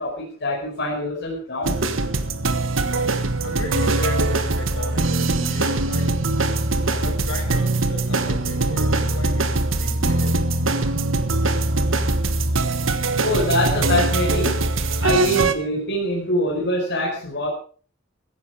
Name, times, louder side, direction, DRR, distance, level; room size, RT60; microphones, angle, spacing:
voice 1, 0.0-1.9 13.2-14.6 15.0-17.5, equal, 55° left, -2 dB, 5.2 m, -24 dB
sound 1, 1.6-15.5, right 2 dB, 75° right, 1.6 m, -22 dB
voice 2, 3.4-6.2 6.9-10.4, left 2 dB, 80° left, 2 dB, 7.5 m, -35 dB
15.5 x 15.5 x 4.9 m, 0.43 s
head